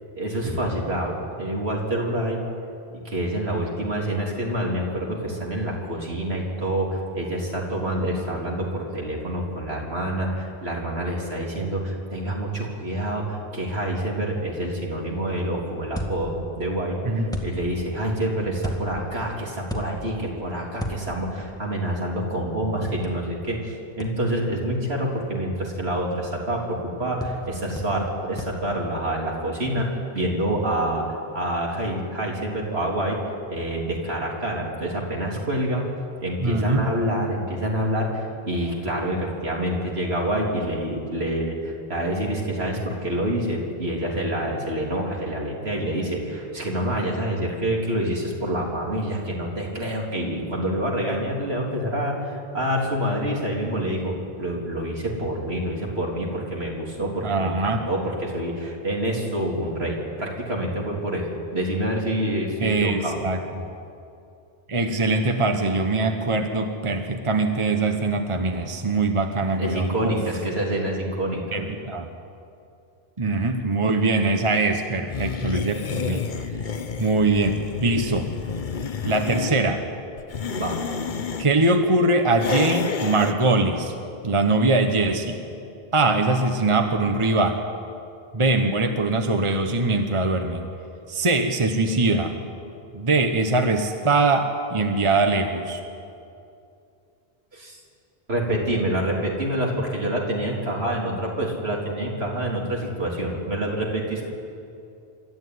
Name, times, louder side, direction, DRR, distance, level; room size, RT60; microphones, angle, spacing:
voice 1, 0.2-2.4 2.9-31.1 31.3-33.2 33.5-35.8 36.2-63.2 69.6-71.6 80.6-80.8 97.5-97.8 98.3-104.2, right 1 dB, 75° right, -2 dB, 3.7 m, -27 dB
sound 1, 15.9-16.6 17.3-17.9 18.6-19.1 19.7-20.3 20.8-21.4 23.0-23.1 24.0-24.1 27.2-27.5 27.8-28.1 28.4-28.6, equal, 5° left, 2.0 m, -33 dB
voice 2, 36.4-36.9 57.2-57.8 62.6-63.4 64.7-70.2 71.5-72.1 73.2-76.3 77.0-78.3 79.0-79.8 81.4-83.9 84.2-85.4 85.9-87.6 88.3-90.6 91.1-92.3 92.9-95.8, right 2 dB, 30° right, 5 dB, 1.2 m, -22 dB
sound 2, 75.1-79.6 80.2-81.5 82.4-83.4, left 5 dB, 50° left, 1.0 m, -30 dB
25.5 x 13.0 x 9.6 m, 2.6 s
omnidirectional pair, 1.1 m